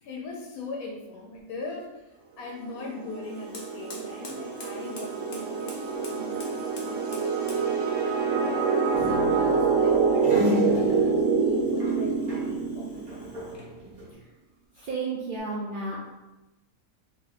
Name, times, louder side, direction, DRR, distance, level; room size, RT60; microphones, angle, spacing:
voice 1, 0.0-13.3, left 2 dB, 85° left, 0 dB, 1.1 m, -40 dB
sound 1, 2.8-13.3, right 5 dB, 65° right, 0.8 m, -26 dB
Fire, 3.2-13.8, left 2 dB, 50° left, 0.8 m, -49 dB
sound 2, 8.9-12.7 13.0-14.1, left 2 dB, 35° right, 0.6 m, -33 dB
voice 2, 14.8-16.0, right 3 dB, 85° right, -4 dB, 0.4 m, -32 dB
2.9 x 2.6 x 3.9 m, 1.0 s
omnidirectional pair, 1.5 m